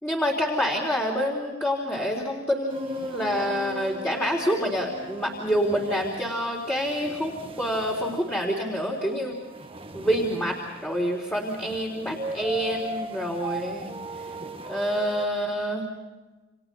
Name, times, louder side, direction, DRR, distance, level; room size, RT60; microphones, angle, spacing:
voice 1, 0.0-9.4 9.9-13.9 14.7-15.8, equal, 10° left, -3 dB, 3.8 m, -27 dB
sound 1, 2.7-15.3, right 2 dB, 25° right, 1.7 m, -39 dB
30.0 x 28.0 x 4.2 m, 1.2 s
head